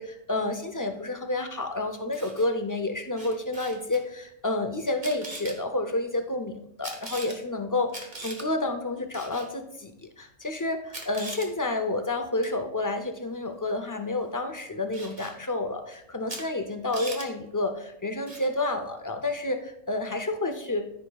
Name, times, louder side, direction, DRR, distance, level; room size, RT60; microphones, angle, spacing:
voice 1, 0.0-20.9, left 2 dB, 30° left, 5 dB, 0.3 m, -30 dB
Camera, 1.9-2.5 3.2-4.0 4.9-5.6 6.8-7.4 7.9-8.5 9.1-9.5 10.4-10.5 10.9-11.5 12.4-12.6 14.9-15.3 16.3-16.4 16.7-17.3 18.3-18.5, right 2 dB, 35° right, 1.3 m, -40 dB
13.5 x 5.2 x 2.3 m, 0.78 s
omnidirectional pair, 1.4 m